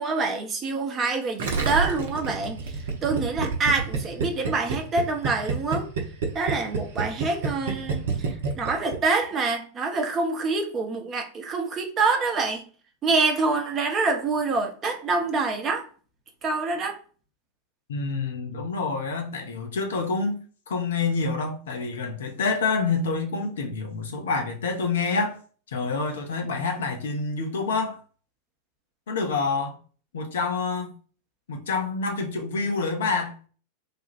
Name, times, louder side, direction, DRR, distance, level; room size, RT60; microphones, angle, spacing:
voice 1, 0.0-5.9 6.3-12.6 13.0-15.9 16.4-17.0, right 3 dB, 25° right, 0.8 m, -26 dB
Gurgling, 1.4-9.2, right 4 dB, 60° right, 0.7 m, -28 dB
voice 2, 17.9-20.4 20.7-25.4 25.7-28.0 29.1-29.8 30.1-30.9 31.5-33.3, left 4 dB, 60° left, 0.8 m, -27 dB
3.4 x 2.4 x 4.1 m
figure-of-eight pair, 90°, 0 cm